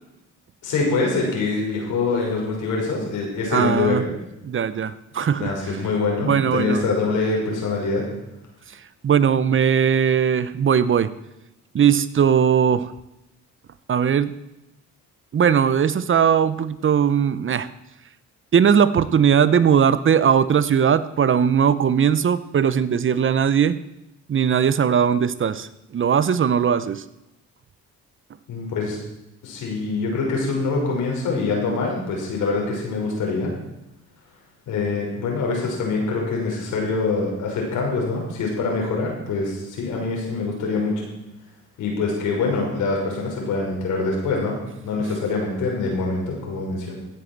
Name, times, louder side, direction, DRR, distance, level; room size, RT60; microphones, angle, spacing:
voice 1, 0.6-4.1 5.4-8.0 28.5-29.0 29.4-33.5 34.7-41.1 41.8-44.5 44.8-46.9, left 3 dB, 80° left, -1 dB, 6.0 m, -24 dB
voice 2, 3.5-4.0 4.4-5.8 6.2-6.8 9.0-11.1 11.7-12.9 13.9-14.3 15.3-17.7 18.5-23.8 24.3-27.0, right 7 dB, 40° right, 15 dB, 0.8 m, -19 dB
16.0 x 8.4 x 7.4 m, 0.90 s
cardioid pair, 90°, 30 cm